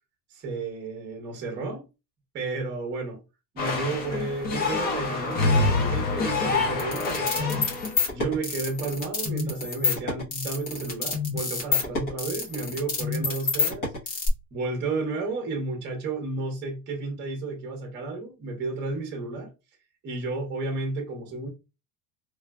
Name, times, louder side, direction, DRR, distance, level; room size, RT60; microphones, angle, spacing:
voice 1, 0.3-1.9 2.3-3.2 3.5-7.6 8.1-14.2 14.5-19.5 20.0-21.5, right 3 dB, 20° right, 0.8 m, -32 dB
sound 1, 3.6-8.0, left 3 dB, 20° left, 0.4 m, -26 dB
sound 2, 6.8-14.3, left 4 dB, 40° left, 1.1 m, -27 dB
3.1 x 2.3 x 2.2 m
supercardioid pair, 145°, 47 cm